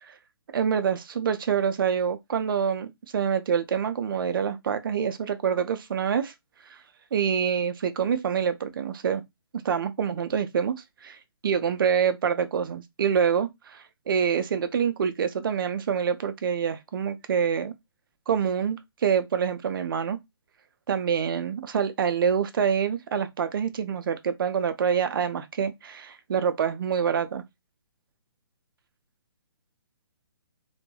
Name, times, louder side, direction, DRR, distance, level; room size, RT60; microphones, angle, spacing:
voice 1, 0.5-6.3 6.7-6.8 7.1-9.2 9.6-10.7 11.0-17.7 18.3-20.2 20.9-27.4, right 7 dB, 55° right, 0.5 m, -26 dB
2.2 x 2.1 x 3.1 m
hypercardioid pair, 150°, 13 cm